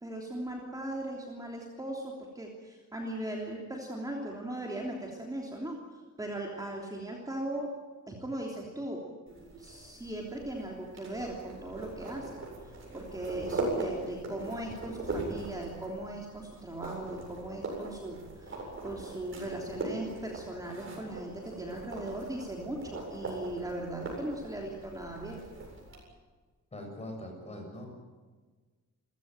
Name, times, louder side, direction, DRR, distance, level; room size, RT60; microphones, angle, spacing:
voice 1, 0.0-5.8 6.2-7.7 8.1-9.0 9.6-12.4 12.9-25.4, right 1 dB, 10° right, -1 dB, 3.2 m, -38 dB
sound 1, 9.3-26.0, right 2 dB, 45° right, 7.9 m, -40 dB
voice 2, 26.7-27.9, left 1 dB, 20° left, 3 dB, 6.9 m, -42 dB
29.0 x 16.0 x 9.1 m, 1.4 s
wide cardioid pair, 160°, 30 cm